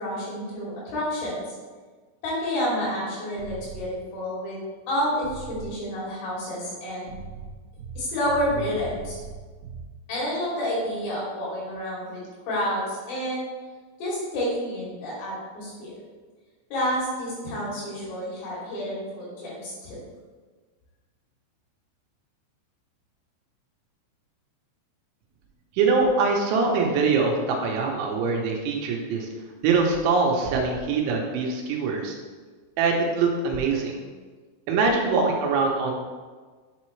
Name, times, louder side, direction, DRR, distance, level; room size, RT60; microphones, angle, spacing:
voice 1, 0.0-1.6 2.2-4.6 4.9-7.1 8.0-9.2 10.1-12.2 12.5-13.5 14.0-15.9 16.7-20.0, equal, 80° left, -6 dB, 5.5 m, -29 dB
sound 1, 3.4-3.8 5.2-5.7 7.1-9.8, right 5 dB, 55° right, 2.5 m, -39 dB
voice 2, 25.8-29.3 29.6-32.2 32.8-34.0 34.7-35.9, right 4 dB, 75° right, 1 dB, 3.2 m, -23 dB
8.6 x 7.9 x 3.2 m, 1.4 s
omnidirectional pair, 5.7 m